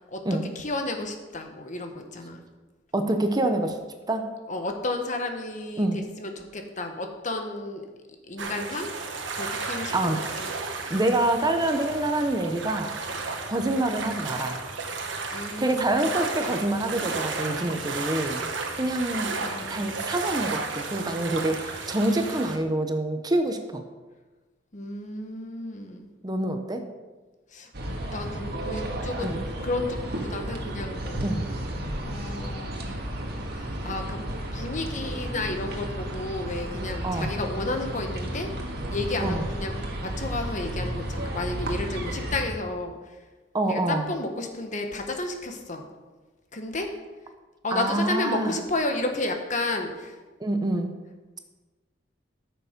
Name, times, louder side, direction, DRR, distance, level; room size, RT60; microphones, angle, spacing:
voice 1, 0.1-2.4 4.5-7.8 8.3-8.9 9.3-10.5 15.3-16.1 19.3-20.0 24.7-26.1 27.5-29.4 29.6-31.2 32.0-33.0 33.6-34.2 34.5-38.5 38.9-43.0 43.7-45.9 46.5-46.9 47.6-50.1, left 2 dB, 45° left, 4 dB, 1.3 m, -32 dB
voice 2, 2.9-3.8 4.1-4.3 5.8-6.0 9.9-10.2 10.9-12.9 13.5-14.6 15.6-19.3 19.7-23.8 26.2-26.8 29.2-29.4 31.2-31.4 37.0-37.3 39.2-39.4 43.5-44.1 47.7-48.6 50.4-51.0, right 1 dB, 20° right, 6 dB, 0.8 m, -26 dB
sound 1, 8.4-22.6, right 4 dB, 85° right, 1.3 m, -33 dB
sound 2, 27.7-42.5, right 1 dB, 60° right, 1.7 m, -33 dB
13.5 x 6.9 x 5.2 m, 1.3 s
head